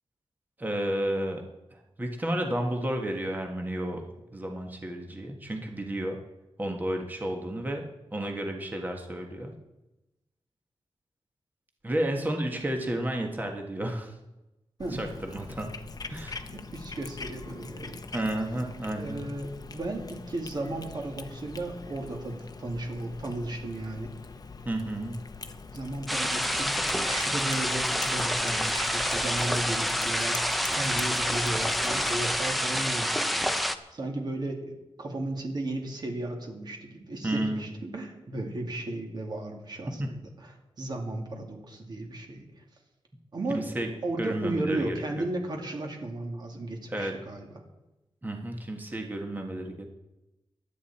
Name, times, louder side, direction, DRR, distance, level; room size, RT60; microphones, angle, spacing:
voice 1, 0.6-1.4 1.7-4.1 4.3-6.2 6.6-7.8 8.1-9.5 11.8-14.2 14.9-15.7 16.1-16.4 18.1-19.3 24.6-25.2 37.2-37.7 40.0-40.1 43.5-43.9 44.2-45.2 46.9-47.1 48.2-49.9, right 1 dB, 20° right, 2 dB, 1.5 m, -32 dB
Cat, 14.8-32.6, left 4 dB, 40° left, 0.9 m, -43 dB
voice 2, 16.5-18.0 18.9-24.1 25.7-33.5 33.9-40.5 40.8-42.6 43.3-43.7 44.0-47.5, right 2 dB, 45° right, 2 dB, 2.6 m, -35 dB
sound 1, 26.1-33.8, equal, ahead, 0.7 m, -28 dB
23.5 x 9.3 x 4.3 m, 0.99 s
wide cardioid pair, 155°, 10 cm